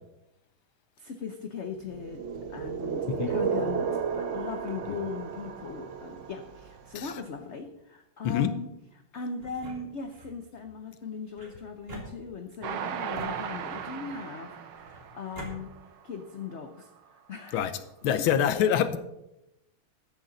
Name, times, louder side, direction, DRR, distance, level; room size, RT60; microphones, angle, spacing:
voice 1, 1.0-8.7 9.1-15.7 16.0-17.6 18.1-18.3, left 5 dB, 55° left, 6 dB, 0.7 m, -39 dB
sound 1, 1.9-6.9, right 7 dB, 60° right, 0.8 m, -33 dB
sound 2, 9.4-10.4 11.4-12.6 13.1-14.0 14.8-15.5, right 2 dB, 30° right, 2.4 m, -45 dB
Train, 12.6-16.1 16.6-16.7 17.0-17.1, right 8 dB, 85° right, 1.8 m, -37 dB
voice 2, 18.0-19.0, left 9 dB, 85° left, 12 dB, 1.7 m, -25 dB
13.5 x 10.5 x 4.0 m, 0.89 s
omnidirectional pair, 2.2 m